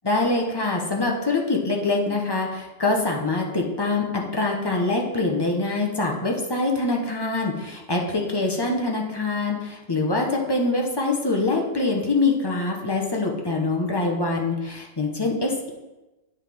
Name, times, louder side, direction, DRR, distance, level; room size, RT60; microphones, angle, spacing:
voice 1, 0.0-15.7, left 3 dB, 25° left, -1 dB, 0.5 m, -24 dB
9.2 x 5.6 x 3.4 m, 1.1 s
omnidirectional pair, 1.9 m